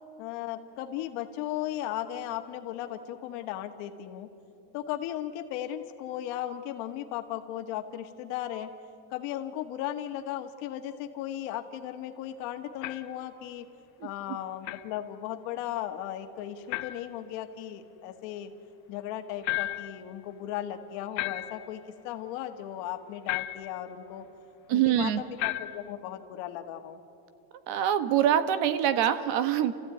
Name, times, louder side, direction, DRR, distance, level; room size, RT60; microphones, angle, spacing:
voice 1, 0.2-4.3 4.7-8.7 9.1-13.7 14.0-18.5 18.9-24.2 24.7-25.1 25.4-27.0, left 12 dB, 65° left, 7 dB, 1.8 m, -36 dB
sound 1, 12.8-13.2 14.6-14.9 16.7-17.1 19.4-20.0 21.2-21.8 23.3-23.8 25.4-25.9, left 17 dB, 40° left, 0.5 m, -33 dB
voice 2, 24.7-25.2 27.7-29.7, right 10 dB, 55° right, 12 dB, 1.3 m, -24 dB
30.0 x 15.0 x 9.2 m, 2.8 s
cardioid pair, 175°, 49 cm